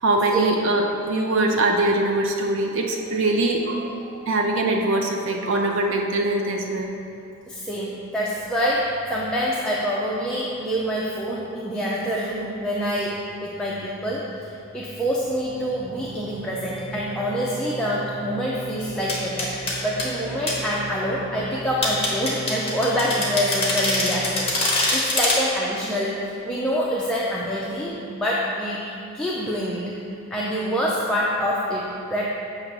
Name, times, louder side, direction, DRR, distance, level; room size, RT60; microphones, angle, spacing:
voice 1, 0.0-3.9 4.3-6.9, right 2 dB, 65° right, 1 dB, 0.5 m, -22 dB
voice 2, 7.5-19.5 19.8-24.5 24.9-29.9 30.3-32.3, equal, 5° left, -6 dB, 0.4 m, -26 dB
sound 1, 15.1-24.5, right 3 dB, 25° right, 1.2 m, -37 dB
sound 2, 19.1-20.1 20.5-20.6 21.8-25.4, left 2 dB, 30° left, 1.1 m, -24 dB
7.6 x 2.9 x 5.9 m, 2.7 s
head